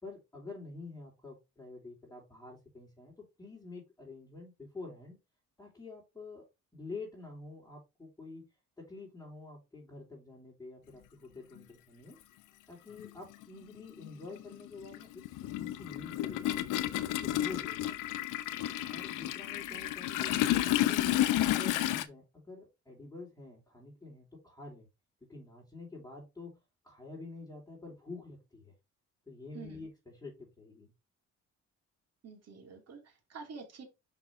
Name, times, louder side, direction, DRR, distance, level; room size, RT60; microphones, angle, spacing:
voice 1, 0.0-5.2 5.6-6.4 6.7-8.5 8.8-12.2 12.7-15.2 15.6-16.9 17.2-18.0 18.9-21.1 21.4-24.9 25.3-26.6 26.8-28.7 29.3-30.9, left 3 dB, 10° left, -5 dB, 4.0 m, -48 dB
Toilet flush, 11.6-11.7 12.9-13.1 13.4-22.0, left 14 dB, 90° left, 0.7 m, -31 dB
voice 2, 29.5-29.9 32.2-33.8, right 5 dB, 55° right, 2 dB, 3.1 m, -48 dB
5.9 x 5.8 x 3.6 m, 0.24 s
cardioid pair, 90°, 30 cm